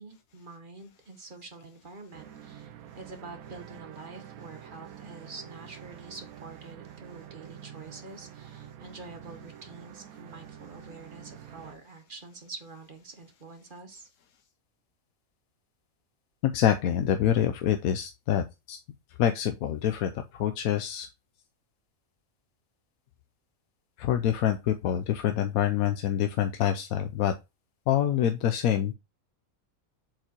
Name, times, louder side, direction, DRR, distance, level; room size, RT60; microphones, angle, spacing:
voice 1, 0.0-14.1, right 3 dB, 40° right, 6 dB, 1.1 m, -46 dB
sound 1, 2.1-11.8, right 10 dB, 90° right, 1.1 m, -47 dB
voice 2, 16.4-18.8 19.2-21.1 24.0-27.3 27.9-28.9, left 10 dB, 90° left, 7 dB, 1.1 m, -26 dB
7.5 x 4.9 x 2.9 m, 0.25 s
omnidirectional pair, 1.5 m